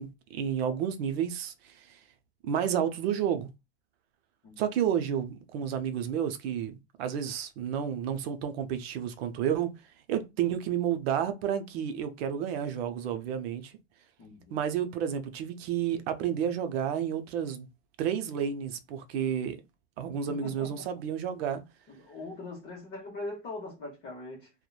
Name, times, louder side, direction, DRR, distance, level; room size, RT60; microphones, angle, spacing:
voice 1, 0.0-2.0 2.4-3.5 4.6-9.7 10.1-13.7 14.5-17.7 18.0-19.6 20.0-21.6, right 9 dB, 55° right, 0.5 m, -31 dB
voice 2, 14.2-14.6 20.3-20.9 21.9-24.5, left 2 dB, 30° left, 0.7 m, -41 dB
2.9 x 2.1 x 2.2 m
supercardioid pair, 140°, 37 cm